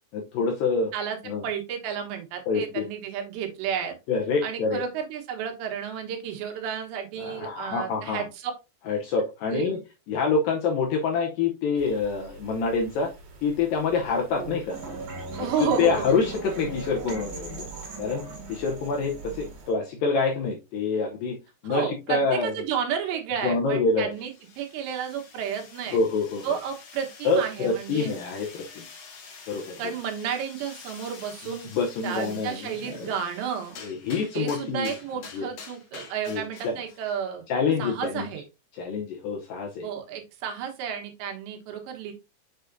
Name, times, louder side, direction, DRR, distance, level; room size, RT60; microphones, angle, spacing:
voice 1, 0.1-0.9 1.3-1.4 2.5-2.9 4.1-4.8 7.2-8.2 8.9-9.8 10.1-13.1 13.4-14.8 15.4-17.7 18.0-21.4 21.6-22.5 23.4-24.1 25.9-26.6 27.2-28.9 29.5-29.8 31.5-33.1 33.8-34.9 35.3-35.5 36.3-36.8 37.5-38.3 38.7-39.9, left 4 dB, 75° left, 1 dB, 2.1 m, -26 dB
voice 2, 1.4-4.0 4.4-8.5 9.5-9.8 14.4-14.6 15.4-16.2 21.7-26.0 26.4-28.1 29.8-31.7 32.0-33.8 34.3-37.5 37.8-38.4 39.8-42.1, right 8 dB, 85° right, 2 dB, 3.5 m, -32 dB
sound 1, 11.8-19.7, right 6 dB, 60° right, 3.1 m, -46 dB
sound 2, 14.7-19.7, right 3 dB, 45° right, 2.8 m, -39 dB
sound 3, 24.1-37.2, left 5 dB, 60° left, 3.0 m, -47 dB
6.8 x 6.2 x 2.6 m, 0.27 s
omnidirectional pair, 4.9 m